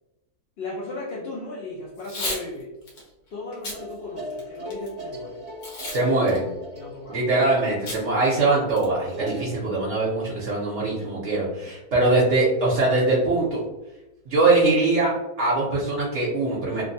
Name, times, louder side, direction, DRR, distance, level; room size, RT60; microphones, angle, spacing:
voice 1, 0.6-2.7 3.3-5.4 6.7-7.2 11.0-11.1, left 2 dB, 60° left, -5 dB, 0.7 m, -36 dB
Packing tape duct tape / Tearing, 2.0-2.4 2.9-3.0 3.5-3.8 4.3-4.9 5.6-6.0 6.3-6.4 7.9-8.0 8.4-8.5 8.8-9.1, left 1 dB, 85° left, 1.4 m, -32 dB
sound 1, 3.6-9.6, equal, 40° right, 0.6 m, -39 dB
voice 2, 5.9-6.5 7.1-13.6 14.3-15.1 15.4-16.8, right 2 dB, 60° right, -6 dB, 1.0 m, -22 dB
3.1 x 2.1 x 2.6 m, 0.99 s
omnidirectional pair, 1.6 m